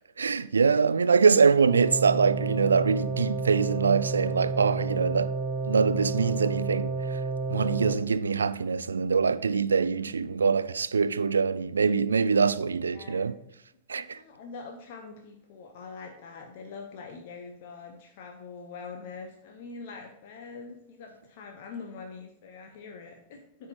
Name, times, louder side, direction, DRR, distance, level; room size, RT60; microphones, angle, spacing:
voice 1, 0.0-5.3 5.6-7.2 7.5-13.3 13.9-14.2, right 5 dB, 75° right, 0.3 m, -24 dB
sound 1, 1.7-7.9, right 4 dB, 30° right, 0.9 m, -31 dB
voice 2, 9.9-10.7 12.9-13.4 14.0-23.7, left 4 dB, 50° left, 0.8 m, -44 dB
13.0 x 4.8 x 2.9 m
figure-of-eight pair, 90°, 0 cm